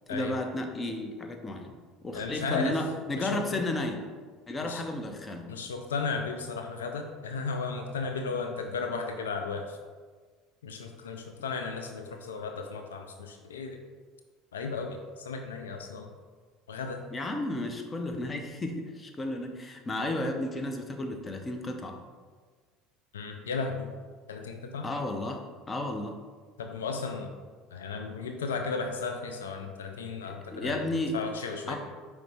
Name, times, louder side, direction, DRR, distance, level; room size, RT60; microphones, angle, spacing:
voice 1, 0.1-1.7 2.0-4.0 4.5-5.5 17.1-22.0 24.8-26.1 30.2-31.2 31.7-31.8, left 1 dB, 25° left, 4 dB, 0.6 m, -33 dB
voice 2, 2.1-2.8 3.2-3.4 4.6-4.8 5.5-9.8 10.6-13.8 14.5-16.1 16.7-17.0 23.1-23.9 24.3-24.9 26.6-27.3 27.7-30.8 31.1-31.8, left 4 dB, 85° left, 4 dB, 0.3 m, -35 dB
5.1 x 3.1 x 3.4 m, 1.5 s
hypercardioid pair, 75°, 0 cm